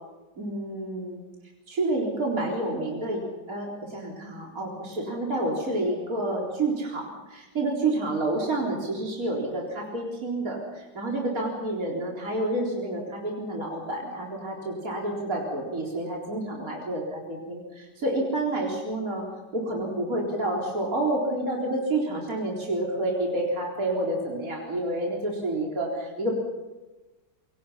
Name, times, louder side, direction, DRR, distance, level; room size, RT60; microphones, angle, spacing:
voice 1, 0.4-1.2 1.7-19.2 19.5-26.3, right 2 dB, 50° right, -2 dB, 4.5 m, -29 dB
28.0 x 23.0 x 5.8 m, 1.1 s
omnidirectional pair, 1.9 m